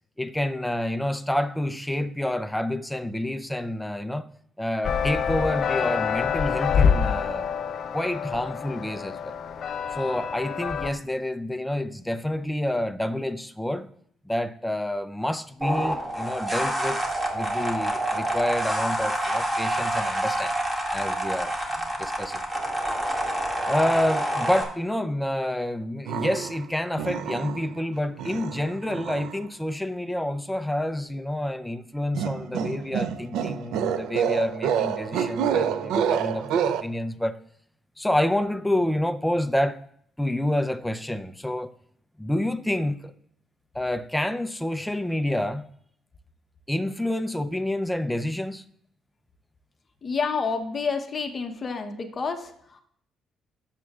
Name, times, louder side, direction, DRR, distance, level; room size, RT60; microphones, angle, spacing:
voice 1, 0.2-4.3 4.6-7.5 7.9-9.3 9.9-13.9 14.2-17.0 17.3-20.5 20.9-22.4 23.7-37.4 38.0-39.8 40.2-41.7 42.2-43.1 43.7-45.7 46.7-48.6, left 1 dB, 5° left, 0.6 m, -28 dB
sound 1, 4.8-10.9, left 7 dB, 60° left, 0.5 m, -26 dB
sound 2, 15.6-24.6, right 1 dB, 10° right, 2.0 m, -27 dB
sound 3, 26.1-26.6 27.0-27.8 28.2-29.4 32.1-36.8, right 8 dB, 90° right, 0.5 m, -27 dB
voice 2, 50.0-52.8, left 5 dB, 40° left, 0.9 m, -29 dB
16.0 x 7.3 x 2.4 m
cardioid pair, 90°, 0 cm